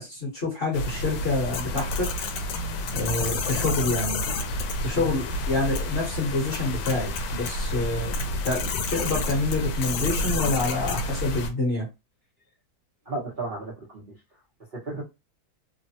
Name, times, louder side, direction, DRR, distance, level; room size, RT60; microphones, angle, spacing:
voice 1, 0.0-2.3 2.9-4.2 4.8-11.9, left 3 dB, 40° left, 0.9 m, -27 dB
sound 1, 0.7-11.5, left 2 dB, 80° left, 1.3 m, -29 dB
voice 2, 13.1-14.0 14.8-15.1, right 2 dB, 85° right, 0.4 m, -34 dB
3.2 x 2.0 x 2.7 m
omnidirectional pair, 2.2 m